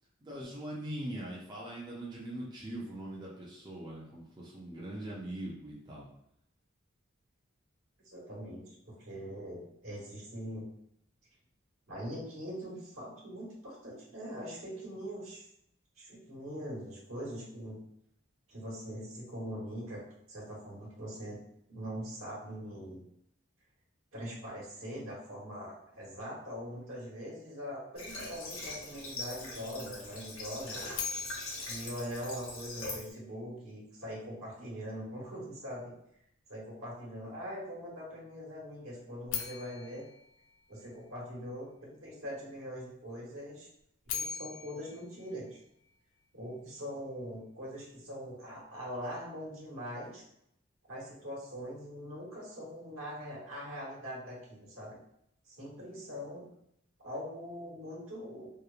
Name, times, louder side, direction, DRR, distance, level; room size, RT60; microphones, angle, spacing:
voice 1, 0.2-6.1, right 1 dB, 20° right, -5 dB, 0.5 m, -41 dB
voice 2, 8.1-10.6 11.9-15.4 16.0-17.8 18.5-20.0 20.3-23.0 24.1-30.8 31.6-35.9 36.5-40.0 40.7-43.7 44.1-45.5 46.3-50.2 50.9-55.0 55.4-56.5 57.0-58.5, equal, 80° right, -5 dB, 1.1 m, -42 dB
Water / Water tap faucet, 28.0-33.1, left 2 dB, 85° left, 1.0 m, -42 dB
sound 1, 30.9-33.1 39.3-41.4 43.8-46.2, left 7 dB, 70° left, 0.4 m, -42 dB
2.9 x 2.0 x 2.4 m, 0.74 s
head